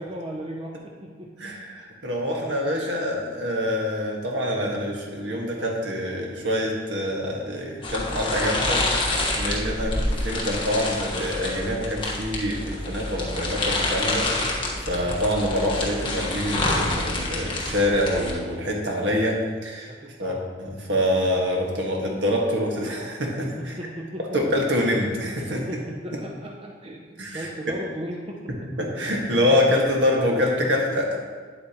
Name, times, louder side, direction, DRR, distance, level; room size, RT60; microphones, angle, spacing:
voice 1, 0.0-1.5 14.9-15.1 19.9-20.5 23.6-24.4 25.5-28.7, right 1 dB, 30° right, -1 dB, 0.6 m, -37 dB
voice 2, 1.4-19.9 20.2-23.7 24.3-25.7 27.2-27.5 28.5-31.2, left 1 dB, 75° right, -1 dB, 1.6 m, -26 dB
sound 1, 7.8-18.3, left 2 dB, 30° left, 1.3 m, -27 dB
9.4 x 8.3 x 3.0 m, 1.5 s
head